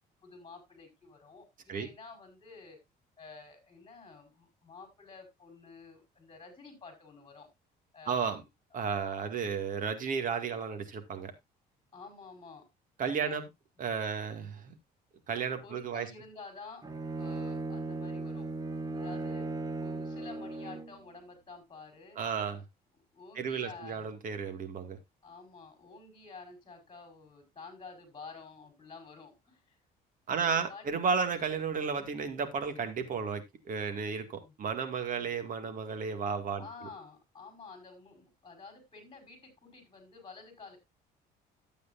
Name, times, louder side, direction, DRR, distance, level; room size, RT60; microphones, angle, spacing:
voice 1, 0.2-2.8 3.2-7.5 7.9-8.2 11.9-12.6 13.2-13.4 15.6-18.5 18.9-19.5 19.8-22.2 23.1-24.1 25.2-29.7 30.3-30.8 31.2-31.4 34.4-34.5 35.1-35.3 36.6-40.8, left 4 dB, 30° left, 4 dB, 4.7 m, -50 dB
voice 2, 8.1-8.4 8.7-11.3 13.0-13.5 13.8-14.7 15.3-16.1 22.2-22.6 23.4-25.0 30.3-36.9, right 6 dB, 50° right, 7 dB, 2.1 m, -33 dB
Bowed string instrument, 16.8-21.0, right 3 dB, 20° right, 1.4 m, -37 dB
12.5 x 8.3 x 2.6 m, 0.20 s
cardioid pair, 110°, 17 cm